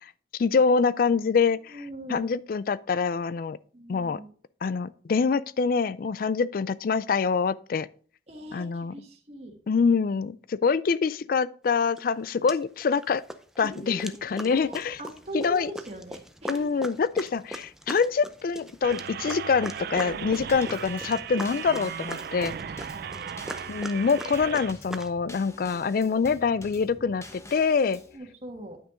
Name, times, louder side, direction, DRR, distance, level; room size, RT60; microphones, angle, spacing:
voice 1, 0.3-1.8 2.1-3.6 3.9-4.2 4.6-7.9 8.5-8.9 9.7-13.2 13.6-15.0 15.3-15.7 16.5-22.5 23.7-28.0, left 5 dB, 50° left, 0.3 m, -25 dB
voice 2, 1.7-2.3 3.7-4.3 8.3-9.6 13.6-16.9 22.6-22.7 22.9-23.4 26.7-27.1 28.1-28.8, right 2 dB, 35° right, 1.5 m, -41 dB
sound 1, 12.0-12.1 12.5-13.0 13.3-25.1, equal, 5° right, 0.5 m, -41 dB
sound 2, 18.8-24.7, right 8 dB, 55° right, 0.3 m, -37 dB
Drum kit / Snare drum / Bass drum, 20.5-28.2, left 2 dB, 15° left, 1.0 m, -47 dB
9.7 x 5.8 x 3.7 m
head